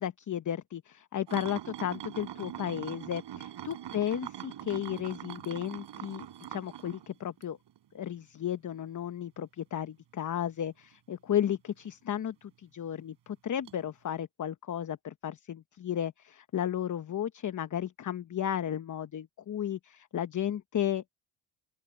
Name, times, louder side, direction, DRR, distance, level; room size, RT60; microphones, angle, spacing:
voice 1, 0.0-7.6 7.9-21.2, left 10 dB, 40° left, 1.1 m, -34 dB
sound 1, 1.3-7.8 8.2-8.4 11.9-12.0 13.7-13.8, right 11 dB, 60° right, 6.2 m, -42 dB
open air
supercardioid pair, 70°, 46 cm